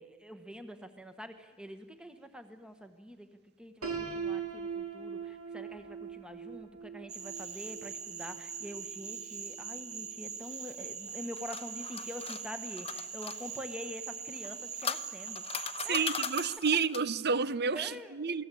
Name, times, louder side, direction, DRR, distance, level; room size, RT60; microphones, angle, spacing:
voice 1, 0.0-3.3 3.6-16.1 17.7-18.4, equal, 5° right, 1.5 m, -45 dB
Piano, 3.8-9.7, right 6 dB, 75° right, 4.6 m, -41 dB
Cricket / Frog, 7.1-16.6, right 6 dB, 35° right, 1.5 m, -42 dB
sound 1, 11.1-13.4 14.4-17.2, left 7 dB, 30° left, 0.9 m, -39 dB
voice 2, 15.9-18.4, right 5 dB, 50° right, 0.9 m, -30 dB
28.5 x 19.5 x 8.6 m
head